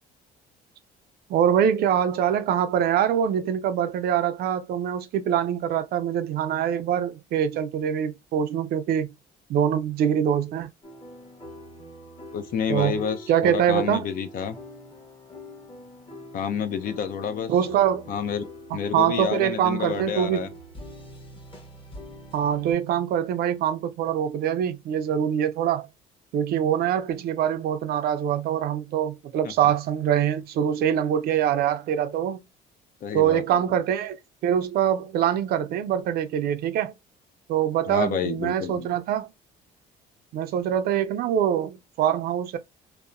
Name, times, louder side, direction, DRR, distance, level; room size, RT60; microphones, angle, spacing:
voice 1, 1.3-9.1 9.5-10.7 12.7-13.0 13.3-14.1 17.5-18.0 18.9-20.5 22.3-25.9 26.3-32.4 33.1-36.9 37.5-39.3 40.3-42.6, right 9 dB, 65° right, 0.5 m, -24 dB
sound 1, 10.8-22.7, equal, 30° left, 1.1 m, -44 dB
voice 2, 12.3-14.5 16.3-17.5 18.1-18.5 18.7-20.5 29.4-29.5 33.0-33.6 37.9-38.9, left 7 dB, 55° left, 0.6 m, -29 dB
2.8 x 2.1 x 2.4 m
cardioid pair, 110°, 17 cm